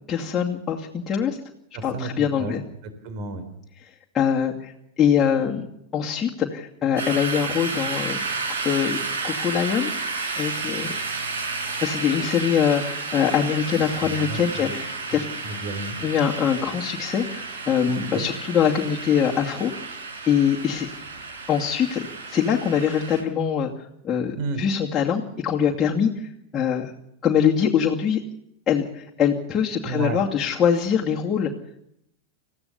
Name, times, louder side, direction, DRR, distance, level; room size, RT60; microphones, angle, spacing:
voice 1, 0.1-1.4 1.8-2.6 4.1-4.7 5.0-5.7 5.9-8.2 8.6-9.0 9.2-10.0 10.4-10.9 11.8-15.3 16.0-19.7 20.2-20.9 21.5-23.7 24.0-24.3 24.6-26.3 26.5-26.9 27.2-28.2 28.7-31.5, left 8 dB, 20° left, -4 dB, 2.6 m, -23 dB
voice 2, 1.7-2.5 2.8-3.4 14.0-14.8 15.1-16.0 17.9-18.3 24.3-24.6 29.9-30.2, right 3 dB, 45° right, 10 dB, 3.7 m, -32 dB
sound 1, 7.0-23.2, right 4 dB, 60° right, 5.5 m, -31 dB
28.0 x 15.5 x 7.1 m, 0.79 s
figure-of-eight pair, 90°, 0 cm